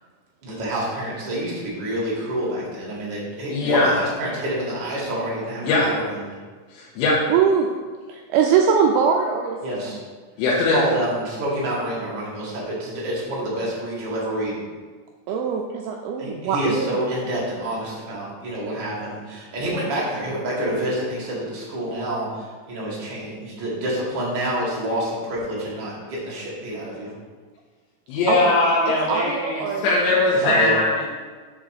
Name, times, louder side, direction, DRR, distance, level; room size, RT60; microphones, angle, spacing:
voice 1, 0.4-6.3 9.6-10.0 10.5-14.6 16.2-27.1 30.4-30.7, right 1 dB, 55° right, -5 dB, 1.2 m, -28 dB
voice 2, 3.5-3.9 5.6-5.8 6.7-7.2 10.4-10.8 28.1-31.1, left 3 dB, 80° left, -5 dB, 3.2 m, -20 dB
voice 3, 7.3-7.7 8.1-9.6 15.3-16.9 28.3-29.9 30.5-30.6, right 6 dB, 85° right, 1 dB, 2.2 m, -22 dB
7.1 x 3.8 x 6.4 m, 1.4 s
omnidirectional pair, 5.0 m